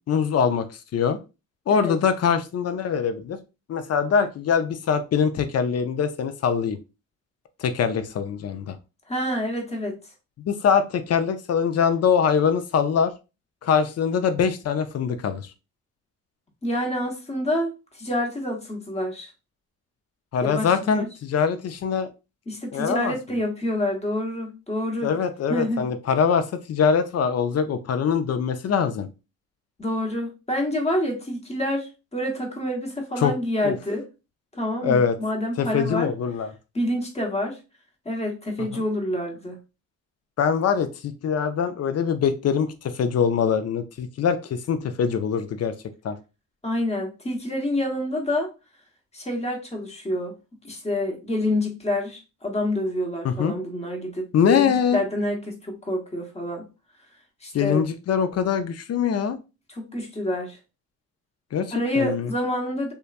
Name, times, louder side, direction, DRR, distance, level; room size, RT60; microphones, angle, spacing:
voice 1, 0.1-0.7 0.9-1.2 1.7-3.4 3.7-6.8 7.6-8.8 10.4-13.1 13.6-15.5 20.3-22.1 22.7-23.1 25.0-29.1 33.2-33.3 33.6-33.8 34.8-35.2 35.6-36.5 38.7-38.8 40.4-45.7 46.0-46.2 53.2-53.5 54.3-55.0 57.5-59.4 61.5-62.3, left 7 dB, 45° left, 9 dB, 0.5 m, -23 dB
voice 2, 9.1-10.0 16.6-19.3 20.5-21.1 22.5-25.1 25.5-25.8 29.8-34.0 34.6-36.1 36.7-37.6 38.0-39.6 46.6-48.5 49.1-50.4 50.6-54.2 54.5-56.6 57.4-57.8 59.8-60.6 61.7-62.9, left 1 dB, 20° left, 1 dB, 1.1 m, -27 dB
2.8 x 2.3 x 2.4 m, 0.29 s
supercardioid pair, 65°, 36 cm